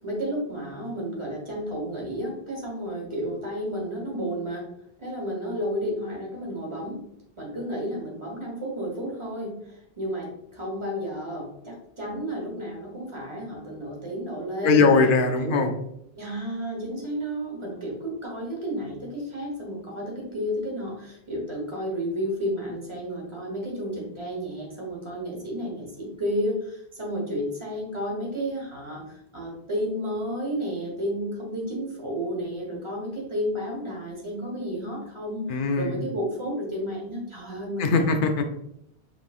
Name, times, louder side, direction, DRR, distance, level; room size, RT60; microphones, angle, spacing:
voice 1, 0.0-4.7 5.0-7.0 7.4-14.9 15.4-15.6 16.2-38.1, equal, 25° right, -2 dB, 1.3 m, -32 dB
voice 2, 14.6-15.7 35.5-36.0 37.8-38.4, left 4 dB, 60° left, 6 dB, 0.7 m, -20 dB
5.2 x 3.2 x 2.4 m, 0.75 s
omnidirectional pair, 1.1 m